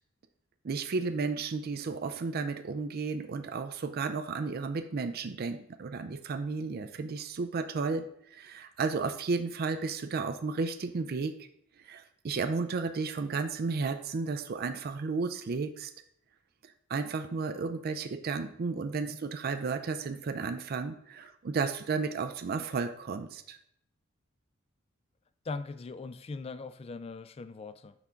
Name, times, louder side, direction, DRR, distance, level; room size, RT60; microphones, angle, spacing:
voice 1, 0.6-11.5 11.8-15.9 16.6-23.6, right 4 dB, 45° right, 8 dB, 0.4 m, -33 dB
voice 2, 25.5-27.9, left 3 dB, 30° left, 12 dB, 0.3 m, -40 dB
6.0 x 3.7 x 5.7 m, 0.71 s
head